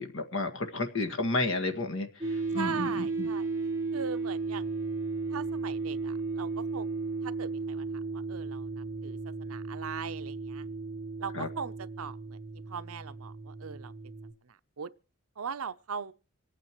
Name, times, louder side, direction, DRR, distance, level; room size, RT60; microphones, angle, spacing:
voice 1, 0.0-3.3 11.3-11.5, left 2 dB, 60° left, 1.7 m, -32 dB
sound 1, 2.2-14.3, right 3 dB, 15° right, 3.1 m, -35 dB
voice 2, 2.5-3.5 3.9-4.7 5.3-7.9 8.1-10.6 11.2-12.4 12.7-13.9 14.5-14.9 15.4-16.1, right 6 dB, 75° right, 0.6 m, -40 dB
26.0 x 9.2 x 3.1 m
head